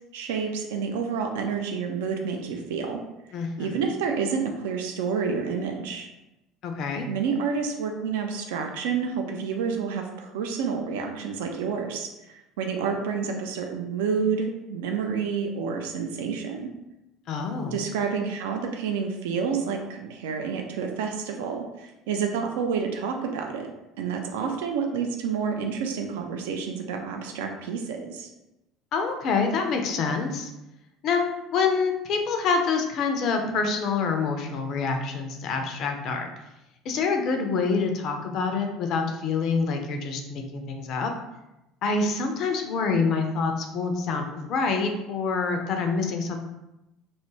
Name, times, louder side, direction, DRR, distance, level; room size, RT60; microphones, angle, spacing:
voice 1, 0.1-3.0 3.6-6.1 7.1-16.7 17.7-23.7 24.0-28.3, right 6 dB, 65° right, 3 dB, 0.3 m, -29 dB
voice 2, 3.3-3.7 6.6-7.1 17.3-17.7 28.9-30.5 31.0-31.2 31.5-36.3 36.9-41.1 41.8-46.4, left 4 dB, 50° left, 4 dB, 0.3 m, -26 dB
2.3 x 2.0 x 3.1 m, 0.95 s
figure-of-eight pair, 65°, 0 cm